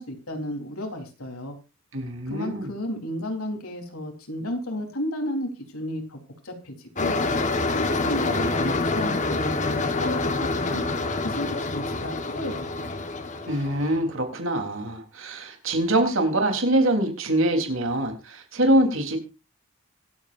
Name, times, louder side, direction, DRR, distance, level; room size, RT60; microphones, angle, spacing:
voice 1, 0.0-1.6 2.3-6.2 6.4-7.2 7.7-10.8 11.2-13.0, left 1 dB, 85° left, 3 dB, 3.9 m, -33 dB
voice 2, 1.9-2.7 13.5-19.2, right 1 dB, 65° right, 4 dB, 3.7 m, -24 dB
sound 1, 7.0-14.0, left 3 dB, 35° left, 1.4 m, -27 dB
25.0 x 8.4 x 2.6 m, 0.28 s
head